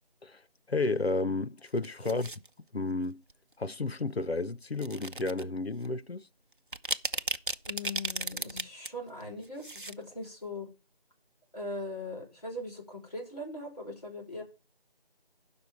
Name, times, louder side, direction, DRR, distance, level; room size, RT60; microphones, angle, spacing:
voice 1, 0.7-2.3 2.7-3.2 3.6-6.3, left 3 dB, 80° left, 0.8 m, -32 dB
sound 1, 1.7-2.5 3.3-3.5 4.7-5.4 5.8-5.9 6.5-8.9 9.2-9.9 10.2-10.3, right 2 dB, 55° right, 0.7 m, -35 dB
voice 2, 7.7-10.7 11.5-14.4, left 2 dB, 40° left, 5.2 m, -40 dB
11.5 x 5.8 x 5.2 m
figure-of-eight pair, 175°, 30 cm